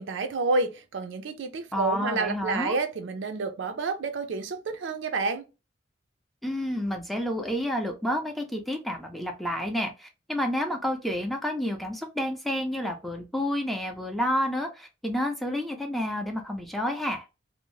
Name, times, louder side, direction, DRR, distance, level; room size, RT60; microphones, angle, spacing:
voice 1, 0.0-5.4, right 3 dB, 70° right, 0.5 m, -29 dB
voice 2, 1.7-2.8 6.4-17.2, left 1 dB, ahead, 0.4 m, -30 dB
2.6 x 2.0 x 3.0 m
head